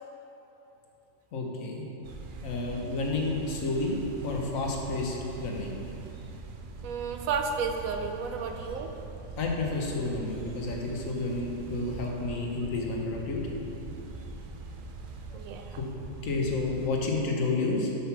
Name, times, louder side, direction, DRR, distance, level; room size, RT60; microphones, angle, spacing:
voice 1, 1.3-1.8 2.4-5.1 5.4-5.7 9.4-13.4 15.3-15.4 15.8-15.9 16.2-17.9, left 3 dB, 80° left, -1 dB, 1.4 m, -30 dB
sound 1, 2.0-16.9, right 4 dB, 55° right, 0.6 m, -42 dB
voice 2, 6.8-8.9 15.3-15.7, right 5 dB, 90° right, 5 dB, 1.0 m, -32 dB
5.5 x 5.5 x 5.7 m, 3.0 s
omnidirectional pair, 1.4 m